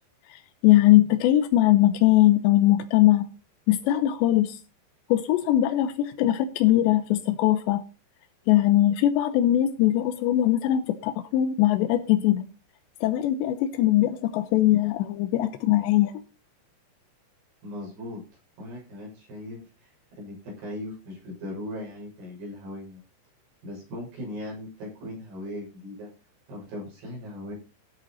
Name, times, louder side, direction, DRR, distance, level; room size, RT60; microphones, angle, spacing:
voice 1, 0.3-3.3 3.7-4.6 5.1-7.8 8.5-12.4 13.0-16.1, left 14 dB, 85° left, 3.1 m, -21 dB
voice 2, 17.6-18.2 18.6-23.0 23.6-26.1 26.5-27.5, left 1 dB, 65° right, 9.1 m, -38 dB
16.0 x 8.5 x 4.2 m
omnidirectional pair, 5.0 m